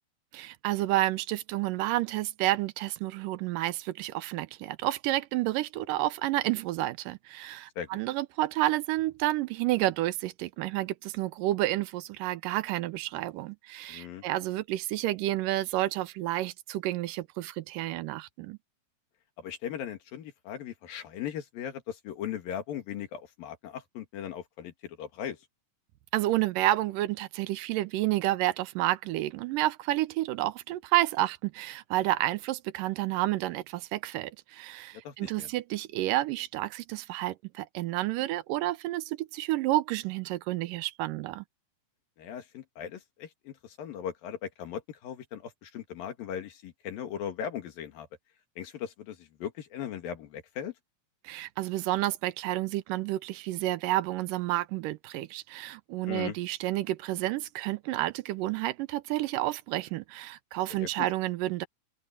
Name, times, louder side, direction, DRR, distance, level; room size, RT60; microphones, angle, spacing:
voice 1, 0.3-18.6 26.1-41.4 51.2-61.7, right 16 dB, 80° right, 2.3 m, -30 dB
voice 2, 13.9-14.2 19.4-25.5 34.9-35.5 42.2-48.1 48.6-50.7 56.0-56.4 60.7-61.1, left 9 dB, 85° left, 3.8 m, -38 dB
open air
omnidirectional pair, 3.9 m